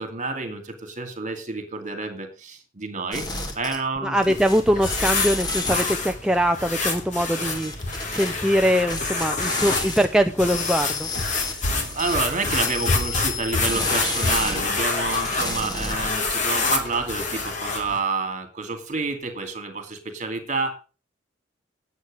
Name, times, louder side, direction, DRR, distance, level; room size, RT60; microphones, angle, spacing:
voice 1, 0.0-4.4 11.4-20.7, right 4 dB, 40° right, 8 dB, 2.4 m, -29 dB
sound 1, 3.1-4.0 4.2-6.1 7.3-8.3 8.9-10.1 10.4-14.6 15.0-16.3, left 3 dB, 20° left, 2.5 m, -30 dB
voice 2, 4.0-7.7 8.1-11.1, equal, 5° right, 5 dB, 0.5 m, -22 dB
sound 2, 4.2-18.0, left 3 dB, 40° left, 2.7 m, -28 dB
9.8 x 8.1 x 6.3 m, 0.33 s
head